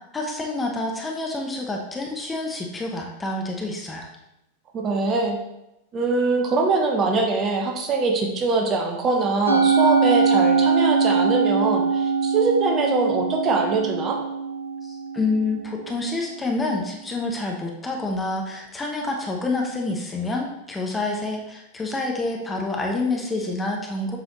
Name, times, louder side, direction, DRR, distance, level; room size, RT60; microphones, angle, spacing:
voice 1, 0.1-4.1 14.8-24.2, left 2 dB, 15° left, 0 dB, 1.0 m, -28 dB
voice 2, 4.7-5.4 5.9-14.2, right 3 dB, 30° right, 1 dB, 1.1 m, -23 dB
Musical instrument, 9.5-15.9, right 5 dB, 85° left, 0.8 m, -22 dB
7.2 x 5.3 x 3.1 m, 0.85 s
figure-of-eight pair, 90°, 0 cm